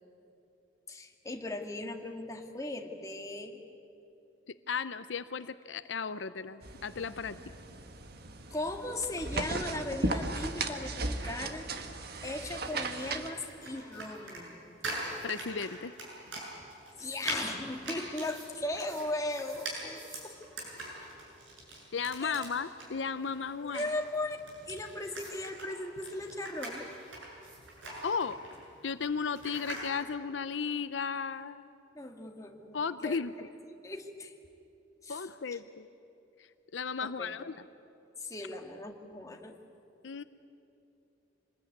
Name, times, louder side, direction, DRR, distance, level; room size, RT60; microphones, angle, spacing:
voice 1, 0.9-3.6 8.5-11.7 12.2-14.8 17.0-20.4 22.2-22.5 23.6-24.4 24.7-26.9 31.9-33.2 33.6-34.3 35.0-35.6 37.0-37.3 38.2-39.6, left 2 dB, 20° left, 3 dB, 1.9 m, -38 dB
voice 2, 4.5-7.4 15.2-15.9 21.9-23.8 28.0-28.4 28.8-31.7 32.7-33.5 35.1-35.9 36.7-37.5 40.0-40.2, left 5 dB, 80° left, 13 dB, 0.7 m, -35 dB
sound 1, 6.6-13.3, right 2 dB, 55° right, 1.6 m, -36 dB
sound 2, 12.4-29.9, right 2 dB, 85° right, 7.7 m, -43 dB
26.5 x 20.5 x 9.4 m, 2.9 s
head